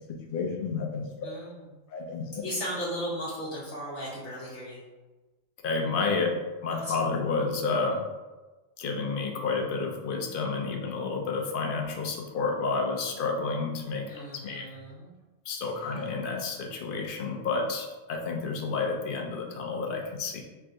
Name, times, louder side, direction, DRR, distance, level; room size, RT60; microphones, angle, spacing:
voice 1, 0.3-1.1 1.9-2.2 5.6-8.0 8.8-14.7 15.5-20.4, left 4 dB, 55° left, 2 dB, 0.7 m, -30 dB
voice 2, 1.2-1.7 2.4-4.8 6.8-6.9 14.1-15.1 15.6-16.1, equal, 70° left, -7 dB, 1.1 m, -36 dB
3.5 x 2.5 x 4.4 m, 1.2 s
omnidirectional pair, 1.3 m